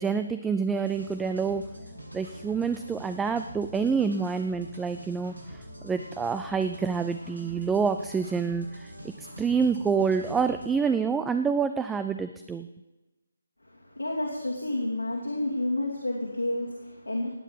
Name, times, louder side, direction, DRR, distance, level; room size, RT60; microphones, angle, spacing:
voice 1, 0.0-1.6 2.1-8.9 9.2-12.7, right 5 dB, 5° right, 9 dB, 0.4 m, -27 dB
sound 1, 0.7-10.7, equal, 90° right, 6.6 m, -44 dB
voice 2, 13.7-17.3, left 1 dB, 80° left, -2 dB, 2.7 m, -30 dB
18.0 x 9.1 x 5.7 m, 1.1 s
figure-of-eight pair, 145°, 0 cm